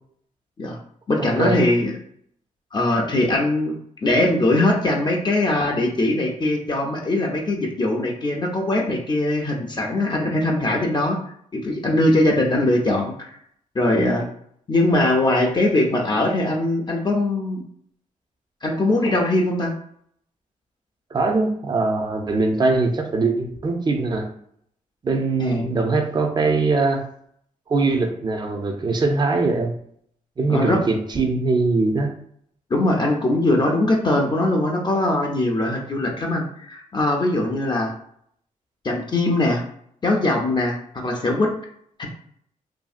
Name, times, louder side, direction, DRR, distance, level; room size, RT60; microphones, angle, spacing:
voice 1, 1.1-1.9 2.7-13.4 13.7-14.3 14.7-17.6 18.6-19.7 25.4-25.7 30.5-30.8 32.7-37.9 38.8-39.6 40.0-41.5 42.0-42.1, left 1 dB, 30° left, 0 dB, 0.5 m, -21 dB
voice 2, 21.1-24.3 25.0-27.0 27.7-29.7 30.4-32.1, right 3 dB, 30° right, 3 dB, 0.5 m, -21 dB
2.7 x 2.6 x 2.4 m, 0.68 s
cardioid pair, 95°, 14 cm